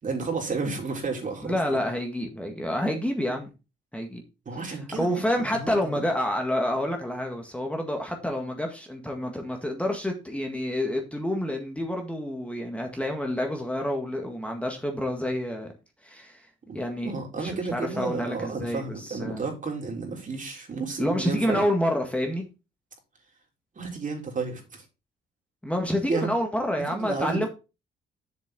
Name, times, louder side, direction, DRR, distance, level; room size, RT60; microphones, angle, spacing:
voice 1, 0.0-1.8 4.5-6.1 16.7-16.8 17.0-21.7 23.8-24.8 26.0-26.3 26.9-27.4, right 4 dB, 40° right, 3.6 m, -32 dB
voice 2, 1.4-3.5 3.9-4.2 4.6-15.7 16.0-16.5 16.7-19.4 21.0-22.4 25.6-27.5, left 1 dB, 5° left, 1.8 m, -28 dB
7.3 x 7.3 x 3.9 m
cardioid pair, 90°, 20 cm